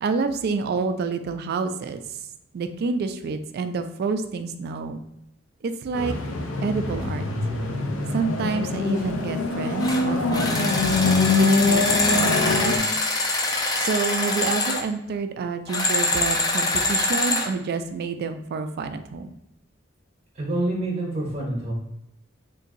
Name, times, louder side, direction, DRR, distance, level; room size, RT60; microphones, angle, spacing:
voice 1, 0.0-2.0 2.5-5.0 5.6-6.1 6.6-7.2 8.1-12.8 13.7-19.3, right 4 dB, 50° right, 9 dB, 0.3 m, -28 dB
sound 1, 5.9-12.8, left 3 dB, 90° left, 0.5 m, -24 dB
sound 2, 9.8-10.0 10.3-14.8 15.7-17.5, left 2 dB, 20° left, 0.4 m, -24 dB
voice 2, 20.3-21.7, right 2 dB, 35° right, -3 dB, 0.7 m, -27 dB
3.8 x 2.6 x 2.5 m, 0.82 s
head